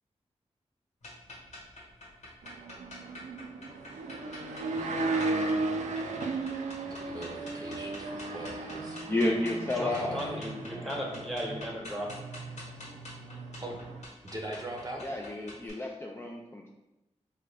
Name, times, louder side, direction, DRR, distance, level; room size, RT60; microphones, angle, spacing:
sound 1, 1.0-15.7, left 1 dB, 75° left, 1.2 m, -48 dB
sound 2, 2.4-14.0, right 3 dB, 80° right, 0.4 m, -36 dB
voice 1, 6.9-9.0 9.9-10.4 13.6-13.8 14.2-15.0, right 1 dB, 30° right, -1 dB, 0.6 m, -41 dB
voice 2, 9.1-10.2 10.7-11.1 15.0-16.7, left 1 dB, 20° left, -1 dB, 0.4 m, -31 dB
voice 3, 9.8-12.1, equal, ahead, -2 dB, 1.0 m, -36 dB
3.6 x 2.2 x 3.4 m, 1.0 s
cardioid pair, 55°, 12 cm